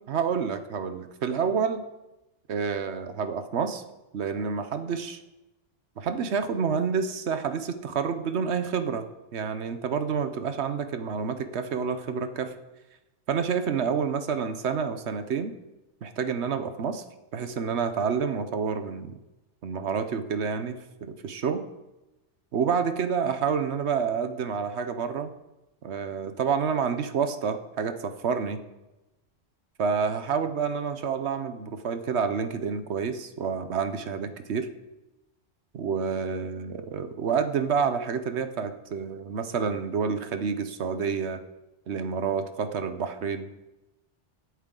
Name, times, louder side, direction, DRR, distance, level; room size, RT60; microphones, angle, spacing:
voice 1, 0.1-1.8 2.5-3.8 4.1-5.2 6.0-9.1 9.3-12.5 13.3-15.5 16.0-17.0 17.3-19.1 19.6-21.6 22.5-25.3 25.8-28.6 29.8-34.7 35.7-41.4 41.9-43.5, right 6 dB, 70° right, 9 dB, 1.1 m, -28 dB
18.5 x 8.1 x 3.8 m, 1.0 s
omnidirectional pair, 1.2 m